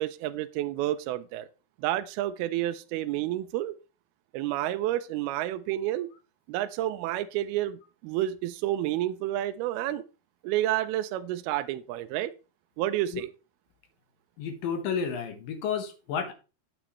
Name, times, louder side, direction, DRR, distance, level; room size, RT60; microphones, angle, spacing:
voice 1, 0.0-1.5 1.8-3.8 4.3-6.1 6.5-10.0 10.4-12.3 12.8-13.3, right 13 dB, 85° right, 2.4 m, -30 dB
voice 2, 14.4-16.3, left 6 dB, 70° left, 2.6 m, -31 dB
9.4 x 7.6 x 3.0 m
omnidirectional pair, 4.5 m